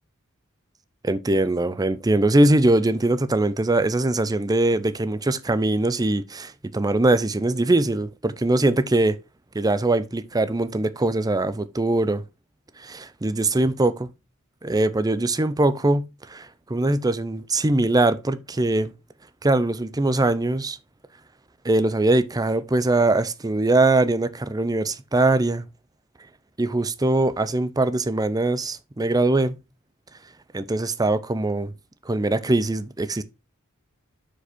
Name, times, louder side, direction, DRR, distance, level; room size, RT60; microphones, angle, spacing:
voice 1, 1.0-9.2 9.5-12.2 12.8-14.1 14.6-18.9 19.4-20.8 21.6-25.6 26.6-29.5 30.5-31.7 32.1-33.2, right 2 dB, 20° right, 0.6 m, -22 dB
6.8 x 4.8 x 4.4 m
head